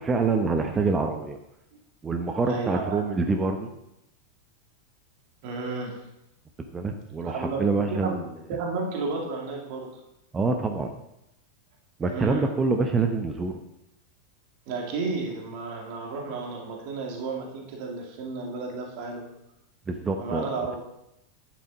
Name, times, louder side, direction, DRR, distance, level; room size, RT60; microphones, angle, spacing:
voice 1, 0.0-1.4 2.0-3.7 6.7-8.2 10.3-10.9 12.0-13.6 19.9-20.5, right 4 dB, 15° right, 4 dB, 0.9 m, -26 dB
voice 2, 2.4-3.0 5.4-6.1 7.2-7.6 7.9-8.2 8.5-10.0 12.0-12.5 14.7-19.2 20.2-20.8, right 3 dB, 45° right, 0 dB, 2.5 m, -32 dB
11.5 x 9.6 x 4.1 m, 0.82 s
figure-of-eight pair, 90°, 0 cm